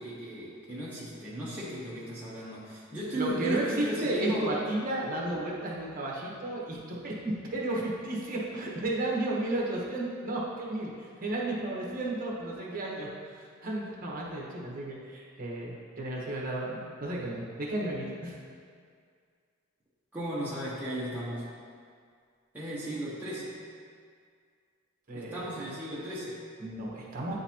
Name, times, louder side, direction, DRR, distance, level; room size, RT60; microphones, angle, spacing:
voice 1, 0.0-4.5 20.1-21.5 22.5-23.6 25.1-26.4, equal, 10° right, -9 dB, 0.8 m, -36 dB
voice 2, 3.1-18.3 25.1-25.5 26.6-27.3, right 1 dB, 40° right, -4 dB, 1.0 m, -33 dB
9.3 x 3.9 x 2.9 m, 2.1 s
head